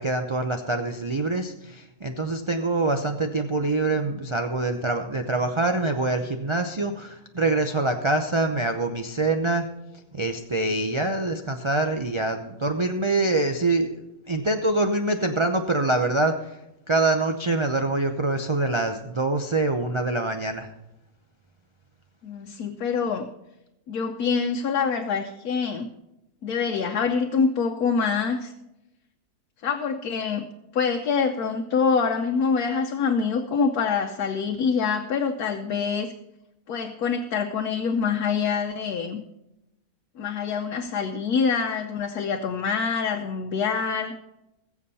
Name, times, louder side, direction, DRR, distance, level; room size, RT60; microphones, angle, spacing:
voice 1, 0.0-9.7 10.1-16.6 16.9-20.7, right 2 dB, 35° right, 5 dB, 0.5 m, -25 dB
voice 2, 22.2-23.3 23.9-25.9 26.4-28.5 29.6-30.5 30.7-36.1 36.7-39.2 40.2-44.1, left 5 dB, 75° left, 3 dB, 1.3 m, -25 dB
20.5 x 7.3 x 4.2 m, 0.91 s
omnidirectional pair, 1.6 m